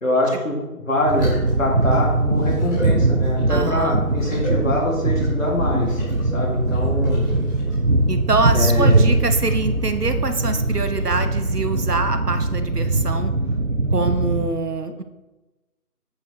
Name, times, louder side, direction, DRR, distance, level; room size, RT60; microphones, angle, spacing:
voice 1, 0.0-0.6 0.9-6.0 6.3-7.3 8.5-9.2, left 1 dB, 55° left, -2 dB, 2.6 m, -23 dB
sound 1, 1.0-11.9, right 1 dB, 15° right, 2.4 m, -35 dB
sound 2, 1.1-14.5, right 2 dB, 55° right, 0.8 m, -21 dB
voice 2, 3.5-4.0 8.1-13.3 13.9-15.0, right 3 dB, 75° right, 8 dB, 1.1 m, -25 dB
8.5 x 8.0 x 3.3 m, 1.1 s
figure-of-eight pair, 165°, 47 cm